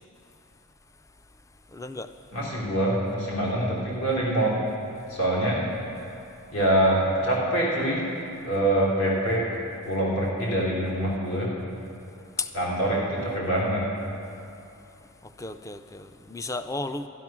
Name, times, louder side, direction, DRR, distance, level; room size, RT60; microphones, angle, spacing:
voice 1, 1.7-2.1 5.7-5.9 12.4-12.6 15.2-17.1, left 3 dB, 15° left, 10 dB, 0.3 m, -34 dB
voice 2, 2.3-4.6 5.1-5.6 6.5-8.1 8.4-9.6 9.8-11.5 12.5-13.9, right 1 dB, 80° left, -4 dB, 3.6 m, -25 dB
12.0 x 11.5 x 6.1 m, 2.7 s
head